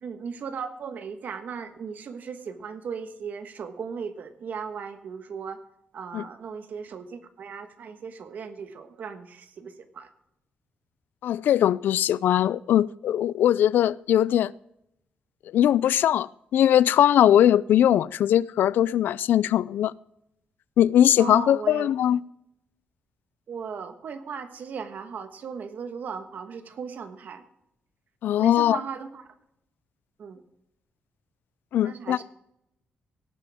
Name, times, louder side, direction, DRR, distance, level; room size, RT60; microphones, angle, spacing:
voice 1, 0.0-5.6 5.9-10.1 21.2-21.9 23.5-27.4 28.4-29.2 30.2-30.4 31.8-32.2, right 6 dB, 60° right, 1.3 m, -37 dB
voice 2, 11.2-14.5 15.5-19.9 20.8-22.2 28.2-28.8 31.7-32.2, left 11 dB, 80° left, 0.3 m, -20 dB
17.5 x 9.1 x 3.5 m
cardioid pair, 125°, 3 cm